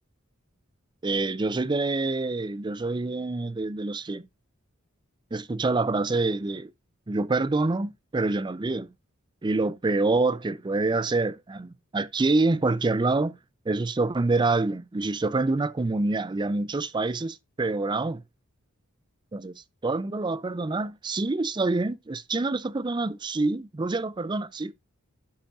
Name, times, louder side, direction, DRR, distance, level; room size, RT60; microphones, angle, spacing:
voice 1, 1.0-4.2 5.3-6.7 7.1-8.9 9.4-13.4 13.7-18.2 19.3-24.7, right 3 dB, 20° right, 0.4 m, -26 dB
11.5 x 5.4 x 2.4 m
head